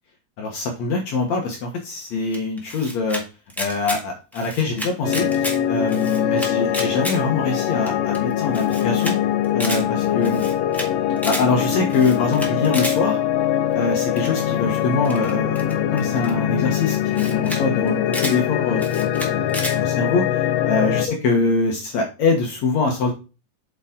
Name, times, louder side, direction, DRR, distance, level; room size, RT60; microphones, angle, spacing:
voice 1, 0.4-3.2 3.6-9.2 9.5-10.4 11.2-13.2 13.7-23.1, left 4 dB, 65° left, 2 dB, 2.3 m, -24 dB
Camera, 2.3-3.2 3.5-4.0 4.3-5.6 5.9-7.2 7.5-7.6 7.9-8.0 8.1-8.2 8.5-9.1 9.4-9.8 10.2-10.9 11.2-11.4 11.9-13.0 14.2-14.4 15.0-16.3 16.9-17.0 17.1-17.6 17.9-18.4 18.8-19.8, equal, ahead, 0.5 m, -30 dB
sound 1, 5.0-21.1, left 10 dB, 90° left, 1.5 m, -22 dB
8.2 x 4.9 x 3.7 m, 0.31 s
omnidirectional pair, 3.8 m